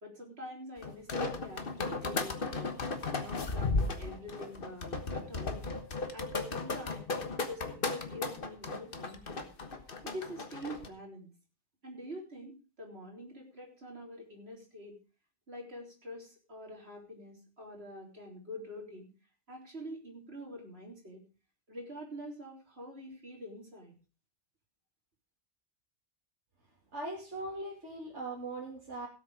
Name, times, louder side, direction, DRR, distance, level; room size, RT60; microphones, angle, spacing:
voice 1, 0.0-2.7 3.2-5.6 6.1-7.1 7.5-9.5 10.0-11.3 11.8-15.0 15.5-19.1 19.5-21.2 21.7-24.0, equal, 60° right, 0 dB, 4.0 m, -46 dB
sound 1, 0.8-10.9, left 3 dB, 50° left, 1.5 m, -35 dB
voice 2, 26.9-29.1, right 2 dB, 75° right, -4 dB, 3.0 m, -40 dB
17.0 x 7.7 x 4.9 m, 0.33 s
omnidirectional pair, 1.2 m